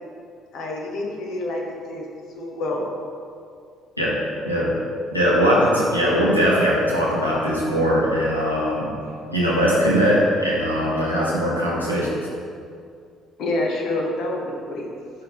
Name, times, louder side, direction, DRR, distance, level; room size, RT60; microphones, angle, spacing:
voice 1, 0.5-2.0 2.3-2.8 13.4-14.9, left 2 dB, 55° left, 0 dB, 1.1 m, -27 dB
voice 2, 5.1-8.9 9.3-12.1, equal, 90° left, -6 dB, 1.2 m, -20 dB
11.0 x 3.7 x 3.2 m, 2.3 s
figure-of-eight pair, 50°, 0 cm